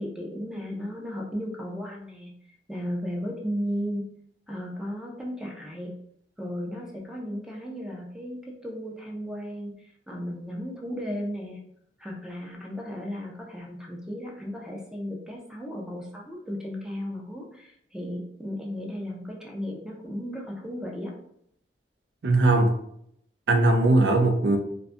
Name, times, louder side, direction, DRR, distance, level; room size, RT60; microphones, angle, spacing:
voice 1, 0.0-2.3 2.7-4.0 4.5-5.9 6.4-11.6 12.0-21.1, equal, 5° right, -1 dB, 0.4 m, -35 dB
voice 2, 22.2-22.7 23.5-24.6, right 2 dB, 75° right, 4 dB, 0.4 m, -19 dB
2.6 x 2.1 x 2.5 m, 0.71 s
head